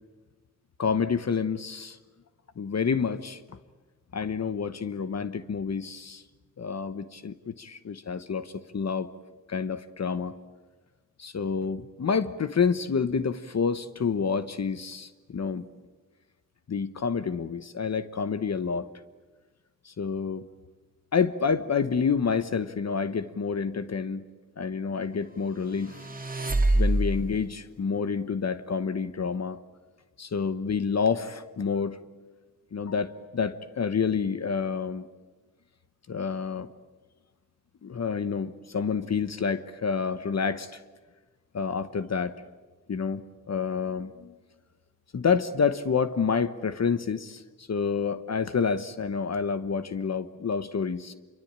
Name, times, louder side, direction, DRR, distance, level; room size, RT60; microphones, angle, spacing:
voice 1, 0.8-2.0 2.6-3.6 4.1-6.2 6.6-9.1 9.5-10.4 11.2-15.7 16.7-18.9 19.8-20.4 21.1-24.2 24.6-26.1 26.7-29.6 30.2-32.0 32.7-35.1 36.1-36.7 37.8-40.8 41.5-42.3 42.9-44.3 45.1-51.1, left 6 dB, 55° left, 12 dB, 1.1 m, -28 dB
sound 1, 25.6-27.4, right 1 dB, 25° right, 2.2 m, -25 dB
27.0 x 24.0 x 8.8 m, 1.3 s
wide cardioid pair, 95°, 32 cm